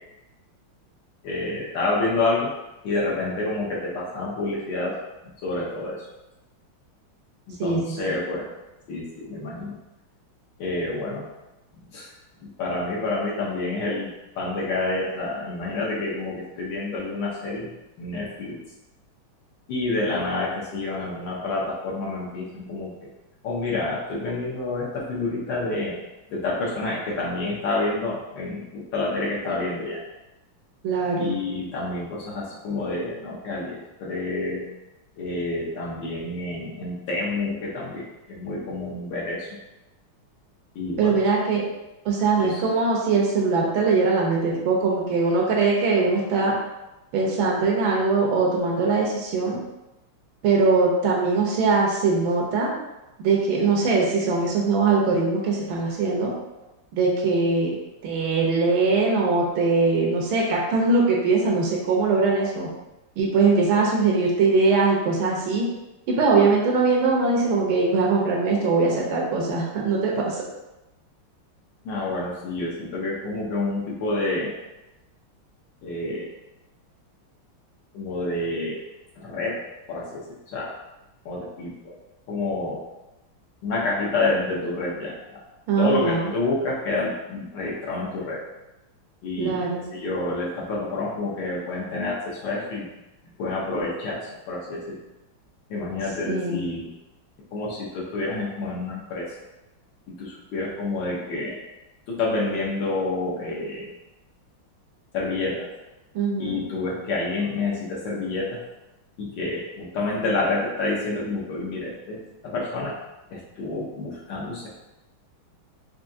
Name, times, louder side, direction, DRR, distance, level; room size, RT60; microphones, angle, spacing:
voice 1, 1.2-2.5 2.8-5.0 5.4-6.1 7.5-8.5 8.9-9.7 10.6-11.3 11.7-12.1 12.4-17.7 18.0-18.6 19.7-23.0 23.4-26.0 26.3-30.0 31.2-34.7 35.2-39.6 40.7-41.2 42.4-42.7 71.8-74.5 75.8-76.3 77.9-78.8 79.2-79.6 79.9-80.7 81.2-82.0 82.3-82.8 83.6-85.4 85.8-88.4 89.2-92.9 93.4-95.0 95.7-96.9 97.5-99.3 100.1-101.6 102.1-103.9 105.1-105.7 106.4-108.6 109.2-113.0 113.3-114.7, left 2 dB, 65° left, -4 dB, 1.4 m, -28 dB
voice 2, 7.6-8.0 30.8-31.4 41.0-41.6 42.0-46.5 47.1-49.6 50.4-52.7 53.2-56.3 56.9-57.7 58.0-62.7 63.2-65.7 66.1-70.4 85.7-86.3 89.4-89.9 96.3-96.6 106.1-106.6, right 4 dB, 75° right, -2 dB, 1.5 m, -21 dB
4.6 x 2.7 x 2.6 m, 0.99 s
omnidirectional pair, 2.3 m